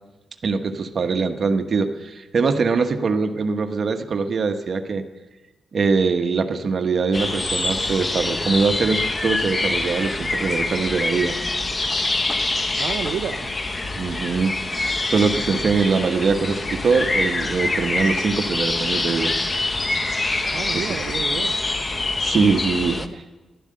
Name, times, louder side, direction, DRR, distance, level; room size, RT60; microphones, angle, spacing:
voice 1, 0.4-5.0 5.7-11.3 14.0-19.3 20.7-21.0 22.2-23.0, right 4 dB, 55° right, 7 dB, 1.1 m, -22 dB
sound 1, 7.1-23.1, left 2 dB, 30° left, 0.9 m, -25 dB
voice 2, 12.8-13.5 20.5-21.5 22.9-23.2, right 8 dB, 75° right, 7 dB, 0.5 m, -30 dB
11.5 x 11.5 x 7.7 m, 1.2 s
cardioid pair, 75°, 0 cm